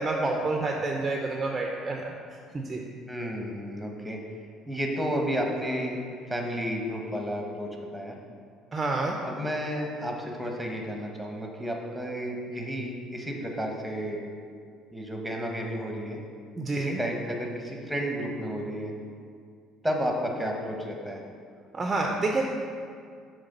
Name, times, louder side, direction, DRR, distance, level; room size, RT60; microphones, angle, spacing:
voice 1, 0.0-2.1 2.5-2.8 8.7-9.2 16.6-17.0 21.7-22.4, right 3 dB, 20° right, 1 dB, 0.5 m, -28 dB
voice 2, 3.1-4.2 4.7-6.0 6.3-8.2 9.2-14.2 14.9-16.2 16.7-18.9 19.8-21.2, equal, ahead, 1 dB, 1.0 m, -32 dB
8.1 x 3.2 x 5.4 m, 2.2 s
cardioid pair, 130°, 0 cm